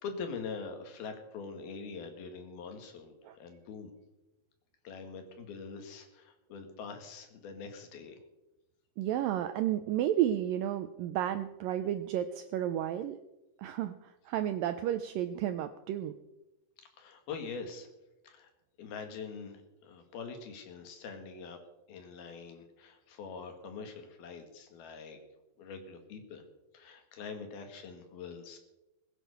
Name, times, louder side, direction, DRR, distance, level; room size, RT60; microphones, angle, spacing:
voice 1, 0.0-3.9 4.8-8.2 16.8-17.9 18.2-18.5 18.8-21.6 21.9-25.2 25.6-26.4 26.7-28.6, left 5 dB, 70° left, 6 dB, 3.7 m, -44 dB
voice 2, 9.0-13.2 13.6-16.1, right 11 dB, 80° right, 10 dB, 2.0 m, -32 dB
21.0 x 9.2 x 6.7 m, 0.98 s
omnidirectional pair, 4.7 m